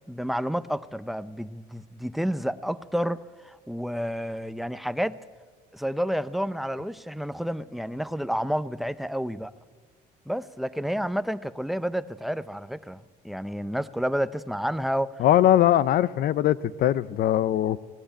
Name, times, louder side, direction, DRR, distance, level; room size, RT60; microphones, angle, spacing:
voice 1, 0.1-5.2 5.7-9.5 10.3-15.2, equal, ahead, 15 dB, 0.6 m, -30 dB
voice 2, 15.2-17.8, left 12 dB, 65° left, 19 dB, 0.6 m, -21 dB
18.5 x 17.0 x 8.8 m, 1.5 s
cardioid pair, 110°, 17 cm